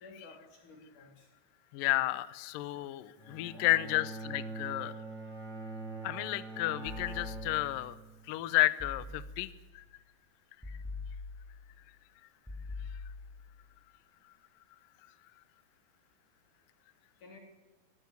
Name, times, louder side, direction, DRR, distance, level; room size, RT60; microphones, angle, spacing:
voice 1, 0.0-1.3 3.5-4.0 17.2-17.4, left 2 dB, 50° left, 1 dB, 4.7 m, -53 dB
voice 2, 1.7-4.9 6.0-8.0 8.3-9.8, left 17 dB, 75° left, 15 dB, 2.2 m, -32 dB
Bowed string instrument, 3.2-8.4, right 3 dB, 30° right, 8.6 m, -43 dB
sound 1, 6.9-7.9 8.8-9.7 10.6-11.7 12.5-13.5, left 3 dB, ahead, 5.9 m, -44 dB
22.5 x 16.0 x 9.5 m, 1.1 s
omnidirectional pair, 4.9 m